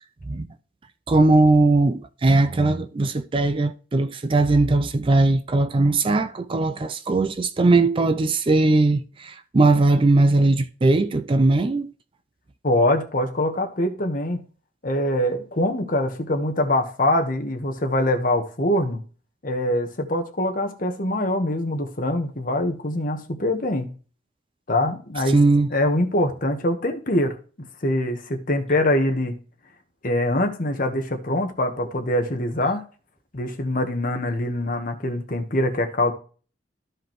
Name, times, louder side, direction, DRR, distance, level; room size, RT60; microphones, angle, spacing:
voice 1, 1.1-11.9 25.3-25.7, right 2 dB, 30° right, 0.4 m, -19 dB
voice 2, 12.6-14.4 14.8-19.0 19.4-23.9 24.7-25.4 25.7-27.4 27.8-29.3 30.0-32.8 33.3-36.1, left 1 dB, 50° left, 1.3 m, -23 dB
13.5 x 4.9 x 3.1 m
head